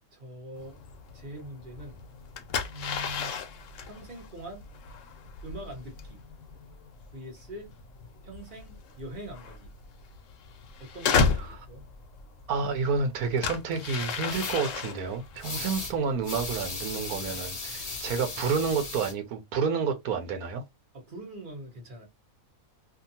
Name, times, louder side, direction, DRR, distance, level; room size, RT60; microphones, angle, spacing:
voice 1, 0.1-0.8 1.1-2.0 2.7-4.7 5.4-6.2 7.1-7.7 8.2-9.7 10.8-11.9 20.9-22.1, right 1 dB, 40° right, 1.1 m, -43 dB
sound 1, 0.5-18.9, left 5 dB, 65° left, 0.9 m, -35 dB
voice 2, 12.5-20.6, right 5 dB, 90° right, 1.2 m, -29 dB
sound 2, 14.3-14.6 15.4-15.9 16.2-19.1, left 3 dB, 30° left, 0.8 m, -36 dB
2.8 x 2.5 x 2.7 m
omnidirectional pair, 1.5 m